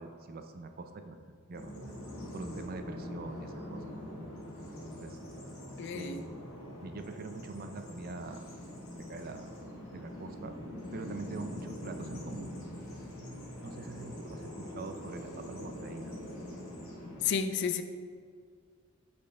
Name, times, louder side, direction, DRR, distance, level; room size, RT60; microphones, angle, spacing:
voice 1, 0.0-1.7 2.3-3.8 5.0-5.2 5.9-6.3 6.8-8.5 9.1-9.5 9.9-10.6 10.9-12.5 13.6-16.2, right 3 dB, 45° right, 7 dB, 0.4 m, -44 dB
Bird vocalization bird call bird song, 1.5-17.3, left 1 dB, 80° left, 1.6 m, -43 dB
voice 2, 5.8-6.3 17.2-17.8, left 7 dB, 55° left, 9 dB, 0.3 m, -31 dB
8.2 x 4.2 x 3.3 m, 2.1 s
head